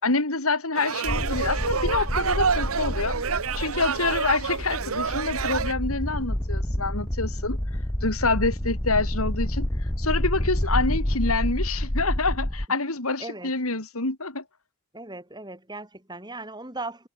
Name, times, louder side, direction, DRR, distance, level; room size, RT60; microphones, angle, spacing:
voice 1, 0.0-3.2 3.6-7.6 8.0-9.7 10.0-14.4, left 3 dB, 85° left, 3.5 m, -27 dB
sound 1, 0.7-5.7, right 6 dB, 80° right, 1.0 m, -28 dB
sound 2, 1.0-12.7, left 1 dB, 15° left, 1.1 m, -28 dB
voice 2, 13.2-13.5 14.9-17.1, right 2 dB, 20° right, 6.4 m, -37 dB
head